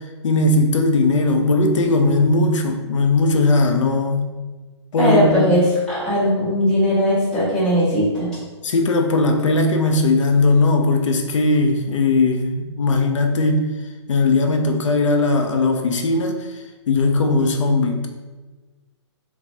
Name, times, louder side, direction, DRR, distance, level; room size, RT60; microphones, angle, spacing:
voice 1, 0.0-4.3 4.9-5.6 8.6-13.7 14.1-18.1, left 2 dB, 90° left, 3 dB, 0.4 m, -18 dB
voice 2, 5.0-8.3, equal, 5° left, -13 dB, 0.7 m, -18 dB
3.2 x 2.0 x 2.6 m, 1.3 s
hypercardioid pair, 170°, 15 cm